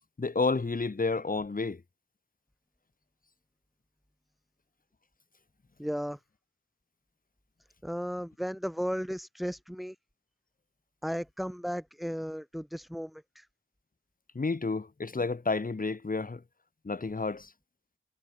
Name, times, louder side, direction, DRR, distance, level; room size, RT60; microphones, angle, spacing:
voice 1, 0.2-1.8 14.3-16.4 16.8-17.5, left 3 dB, 45° left, 1.4 m, -30 dB
voice 2, 5.8-6.2 7.8-10.0 11.0-13.5, equal, ahead, 2.6 m, -35 dB
wide cardioid pair, 60°, 21 cm